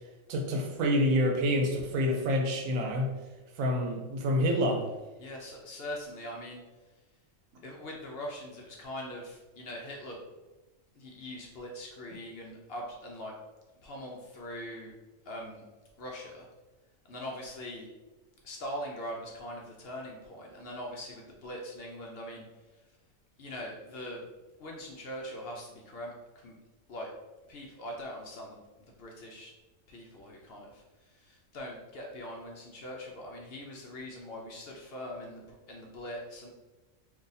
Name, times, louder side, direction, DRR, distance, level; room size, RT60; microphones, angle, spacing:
voice 1, 0.3-3.1 3.6-4.8, equal, 90° right, 2 dB, 1.0 m, -27 dB
voice 2, 5.2-6.6 7.6-10.2 11.0-13.4 13.8-14.9 15.2-15.6 16.0-16.5 17.1-17.9 18.4-22.4 23.4-24.2 24.6-26.1 26.4-26.6 26.9-27.1 27.5-29.5 29.9-36.5, equal, 60° left, -1 dB, 0.7 m, -42 dB
2.7 x 2.6 x 3.8 m, 1.2 s
omnidirectional pair, 1.3 m